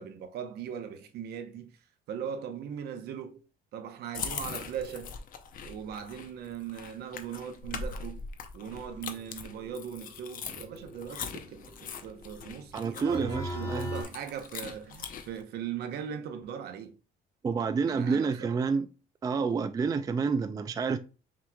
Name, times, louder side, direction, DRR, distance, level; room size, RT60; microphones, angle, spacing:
voice 1, 0.0-1.7 2.1-3.4 3.7-5.2 5.6-8.2 8.5-16.9 17.6-18.5, right 8 dB, 70° right, 0.8 m, -39 dB
sound 1, 4.1-15.4, left 6 dB, 55° left, 0.7 m, -41 dB
sound 2, 8.7-14.0, right 1 dB, 15° left, 1.5 m, -41 dB
voice 2, 12.7-13.9 17.4-18.9 19.2-21.0, right 5 dB, 20° right, 0.3 m, -29 dB
6.0 x 3.0 x 2.3 m
cardioid pair, 110°, 17 cm